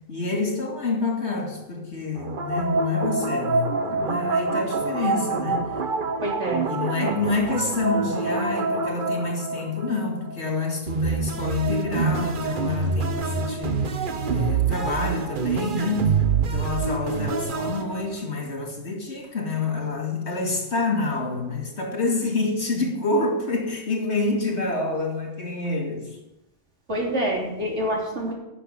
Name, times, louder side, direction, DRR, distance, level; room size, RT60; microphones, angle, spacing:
voice 1, 0.1-5.7 6.6-26.1, left 3 dB, 75° left, 1 dB, 2.8 m, -27 dB
sound 1, 2.1-10.3 10.9-18.3, right 4 dB, 50° right, 1.0 m, -26 dB
voice 2, 6.2-6.7 26.9-28.3, equal, 90° right, -2 dB, 3.5 m, -26 dB
10.0 x 6.6 x 8.3 m, 0.92 s
omnidirectional pair, 1.2 m